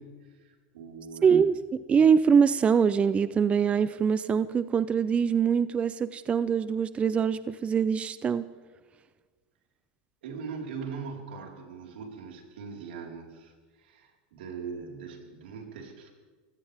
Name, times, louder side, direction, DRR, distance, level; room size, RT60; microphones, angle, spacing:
voice 1, 0.0-1.4 10.2-16.1, right 5 dB, 85° right, 1 dB, 4.3 m, -41 dB
voice 2, 1.2-1.6 1.9-8.4, right 6 dB, 20° right, 15 dB, 0.5 m, -23 dB
24.5 x 16.5 x 3.5 m, 1.5 s
supercardioid pair, 125°, 5 cm